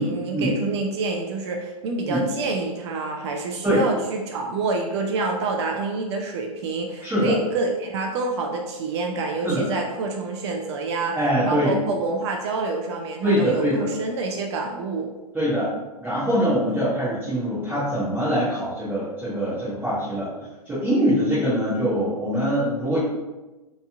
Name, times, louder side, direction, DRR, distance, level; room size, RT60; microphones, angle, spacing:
voice 1, 0.0-11.2 11.4-15.1 16.7-16.8, right 3 dB, 45° right, 2 dB, 0.4 m, -27 dB
voice 2, 7.0-7.4 9.4-9.6 11.1-11.8 13.2-13.9 15.3-15.7 16.0-20.3 20.7-23.0, equal, 10° right, -12 dB, 0.8 m, -23 dB
3.0 x 2.4 x 2.3 m, 1.1 s
hypercardioid pair, 125°, 20 cm